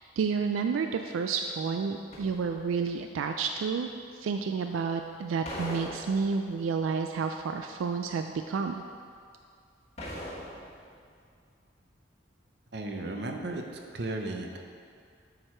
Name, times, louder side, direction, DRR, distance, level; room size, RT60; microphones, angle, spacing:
voice 1, 0.0-8.8, right 5 dB, 90° right, 6 dB, 0.3 m, -30 dB
sound 1, 2.1-2.9 5.5-6.7 10.0-11.1 11.3-11.4, left 1 dB, 35° left, 1.1 m, -41 dB
voice 2, 12.7-13.6 13.9-14.6, right 2 dB, 55° right, 3 dB, 0.6 m, -34 dB
7.7 x 4.8 x 4.3 m, 2.2 s
head